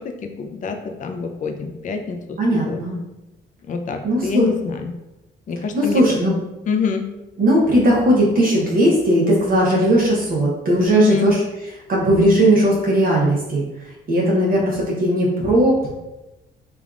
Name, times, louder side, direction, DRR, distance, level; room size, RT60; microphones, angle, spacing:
voice 1, 0.0-2.8 3.7-4.9 5.5-6.0 6.7-7.1 10.9-11.3, left 6 dB, 40° left, 5 dB, 0.4 m, -26 dB
voice 2, 2.4-3.0 4.0-4.5 5.7-6.3 7.4-11.4 11.9-15.9, right 1 dB, 45° right, -4 dB, 0.8 m, -17 dB
3.4 x 2.3 x 2.4 m, 0.98 s
cardioid pair, 90°, 20 cm